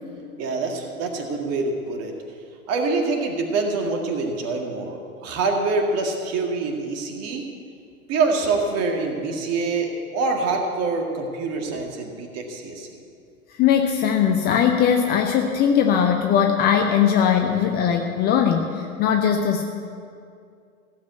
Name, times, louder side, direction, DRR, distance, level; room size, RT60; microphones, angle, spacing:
voice 1, 0.4-2.1 2.7-7.4 8.1-12.9, right 3 dB, 35° right, 3 dB, 2.0 m, -25 dB
voice 2, 13.5-19.6, left 8 dB, 20° left, 4 dB, 0.6 m, -20 dB
15.5 x 7.3 x 8.2 m, 2.3 s
figure-of-eight pair, 100°, 44 cm